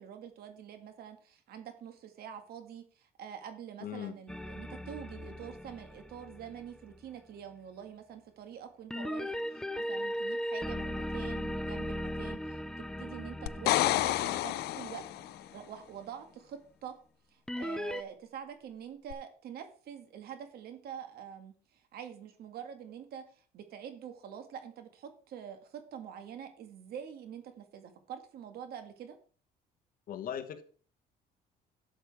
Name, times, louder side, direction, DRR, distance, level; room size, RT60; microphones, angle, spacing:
voice 1, 0.0-16.9 17.3-29.2, right 8 dB, 70° right, 1.9 m, -46 dB
voice 2, 3.8-4.1 30.1-30.6, left 9 dB, 55° left, 1.2 m, -38 dB
sound 1, 4.3-7.0 8.9-15.4 17.5-18.0, equal, 5° left, 0.6 m, -38 dB
sound 2, 13.5-15.4 19.1-19.2, left 16 dB, 70° left, 0.4 m, -29 dB
12.0 x 7.4 x 3.5 m
cardioid pair, 110°, 17 cm